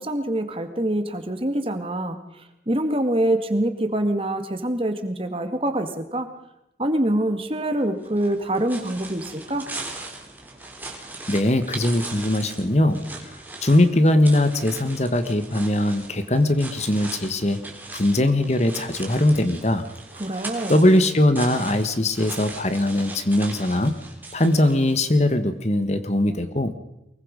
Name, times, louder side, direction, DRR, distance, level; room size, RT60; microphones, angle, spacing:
voice 1, 0.0-2.2 2.7-6.3 6.8-9.7 20.2-20.7, right 1 dB, 30° right, 8 dB, 2.0 m, -25 dB
sound 1, 8.0-25.2, right 3 dB, 10° right, 3.7 m, -39 dB
voice 2, 11.3-13.3 13.6-17.6 17.9-19.9 20.7-24.0 24.3-26.7, left 1 dB, 40° left, 10 dB, 1.6 m, -20 dB
24.0 x 22.5 x 5.3 m, 0.86 s
head